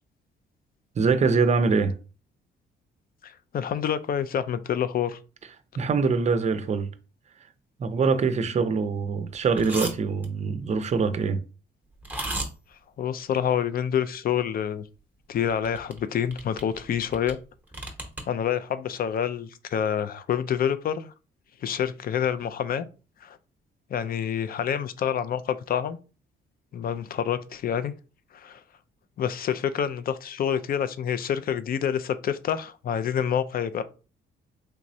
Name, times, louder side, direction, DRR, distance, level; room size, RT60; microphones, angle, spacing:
voice 1, 1.0-1.9 5.8-6.9 7.8-11.4, right 4 dB, 35° right, 0.5 m, -24 dB
voice 2, 3.2-5.2 13.0-14.9 15.3-17.4 18.3-21.1 21.6-22.9 23.2-23.4 23.9-26.0 26.7-27.9 28.3-28.6 29.2-33.8, left 9 dB, 50° left, 0.4 m, -27 dB
sound 1, 9.5-9.9 10.2-10.3 12.0-12.5 15.5-16.0 16.3-17.3 17.7-18.2, right 2 dB, 10° right, 0.9 m, -33 dB
3.3 x 3.0 x 2.6 m
cardioid pair, 90°, 20 cm